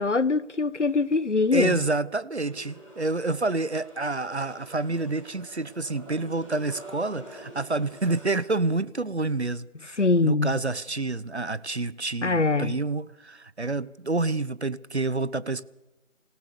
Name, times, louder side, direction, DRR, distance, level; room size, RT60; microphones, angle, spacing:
voice 1, 0.0-1.8 10.0-10.6 12.2-12.7, left 3 dB, 65° left, 1.1 m, -23 dB
voice 2, 1.5-15.6, right 3 dB, 55° right, 1.1 m, -28 dB
sound 1, 2.4-8.4, equal, 5° right, 3.8 m, -47 dB
27.5 x 17.0 x 7.0 m
figure-of-eight pair, 180°, 39 cm